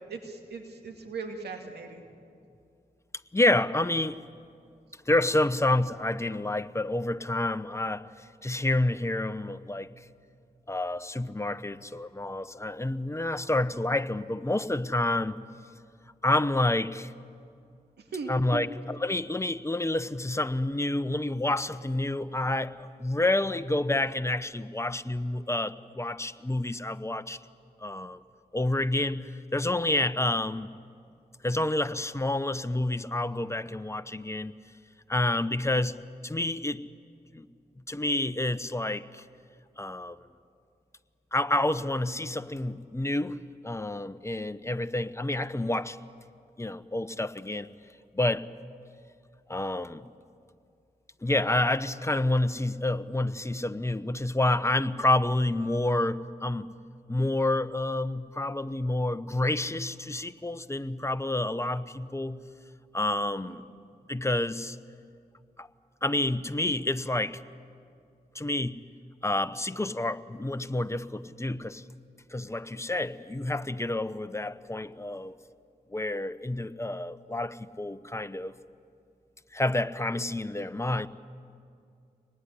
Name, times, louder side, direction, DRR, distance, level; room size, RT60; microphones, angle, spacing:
voice 1, 0.1-2.0 18.1-18.6 63.5-63.6, right 4 dB, 85° right, 4 dB, 2.3 m, -38 dB
voice 2, 3.3-4.2 5.1-8.1 8.4-9.9 10.7-15.4 16.2-17.1 18.3-27.4 27.8-28.2 28.5-30.7 31.4-34.5 35.1-36.8 37.3-37.5 37.9-39.2 39.8-40.2 41.3-43.4 43.6-46.0 46.6-47.7 48.2-48.5 49.5-50.0 51.2-56.7 57.1-62.4 62.9-63.6 64.1-64.8 65.6-65.7 66.0-67.4 68.3-68.8 69.2-71.8 72.3-75.3 75.9-78.5 79.5-81.1, left 2 dB, 15° left, 12 dB, 1.0 m, -28 dB
25.0 x 19.5 x 10.0 m, 2.4 s
cardioid pair, 50°, 17 cm